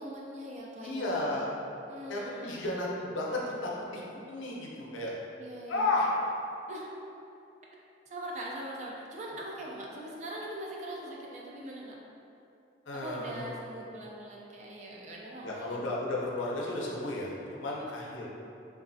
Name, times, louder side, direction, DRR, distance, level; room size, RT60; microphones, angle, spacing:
voice 1, 0.0-1.5 1.9-2.7 5.4-5.9 6.7-6.9 8.1-12.0 12.9-15.8 17.8-17.9, right 1 dB, 40° right, -3 dB, 0.4 m, -42 dB
voice 2, 0.8-1.5 2.1-5.1 5.7-6.1 12.9-13.5 15.4-18.3, left 2 dB, 90° left, -3 dB, 0.5 m, -33 dB
3.0 x 2.4 x 2.6 m, 2.7 s
head